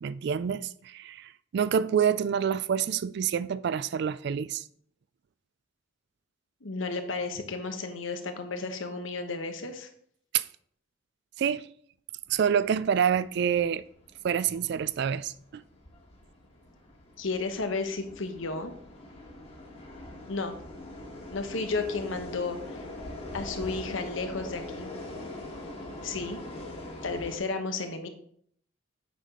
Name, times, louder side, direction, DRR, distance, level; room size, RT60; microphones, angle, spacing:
voice 1, 0.0-4.6 10.3-10.4 11.4-11.7 12.3-13.8 14.2-15.6, right 8 dB, 55° right, 0.3 m, -27 dB
voice 2, 6.6-9.9 17.2-18.7 20.3-20.5 21.3-22.8 23.3-24.9 26.0-26.4 27.0-28.1, left 3 dB, 80° left, 1.0 m, -33 dB
sound 1, 12.3-27.4, left 1 dB, 30° left, 1.4 m, -42 dB
8.6 x 5.6 x 3.7 m
head